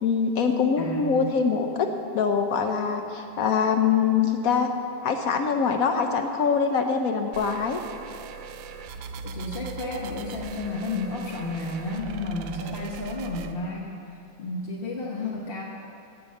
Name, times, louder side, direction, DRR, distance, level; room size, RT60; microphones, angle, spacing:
voice 1, 0.0-1.9 2.1-4.7 5.0-7.8, left 6 dB, 70° left, 5 dB, 0.8 m, -24 dB
voice 2, 0.8-1.3 9.2-13.9 14.4-15.6, left 2 dB, 40° left, -3 dB, 0.9 m, -32 dB
sound 1, 7.3-13.5, right 6 dB, 75° right, 1.3 m, -40 dB
16.5 x 5.5 x 7.6 m, 2.7 s
omnidirectional pair, 2.2 m